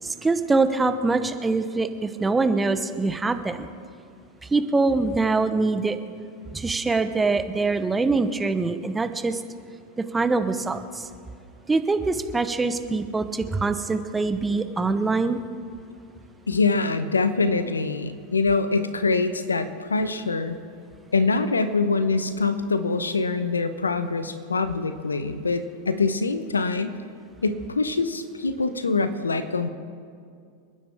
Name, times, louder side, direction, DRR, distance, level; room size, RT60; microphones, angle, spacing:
voice 1, 0.0-3.7 4.5-6.0 6.5-9.4 10.0-11.1 11.7-15.4, right 3 dB, 15° right, 10 dB, 1.0 m, -24 dB
voice 2, 16.5-20.6 21.1-26.9 27.4-29.7, left 3 dB, 90° left, 11 dB, 0.9 m, -24 dB
29.0 x 9.9 x 3.5 m, 2.3 s
hypercardioid pair, 90°, 0 cm